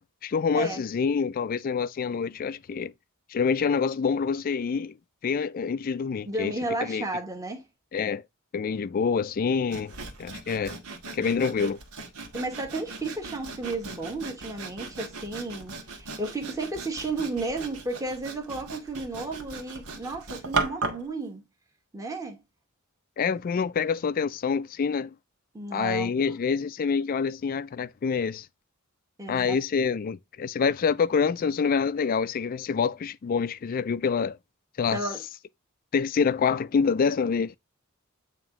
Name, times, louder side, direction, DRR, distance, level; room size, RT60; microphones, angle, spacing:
voice 1, 0.0-2.9 3.3-4.9 5.2-6.5 6.8-7.0 7.9-8.2 8.5-9.9 10.2-10.8 11.1-11.8 23.2-25.1 25.7-28.5 29.3-34.4 34.8-35.0 35.9-37.5, left 5 dB, 40° left, 0.3 m, -26 dB
voice 2, 6.3-7.6 12.3-21.4 21.9-22.4 25.5-26.1 29.2-29.6 34.9-35.2, right 2 dB, 15° right, 1.1 m, -33 dB
Sawing, 9.7-21.1, right 3 dB, 90° right, 1.3 m, -37 dB
8.8 x 3.0 x 3.6 m
head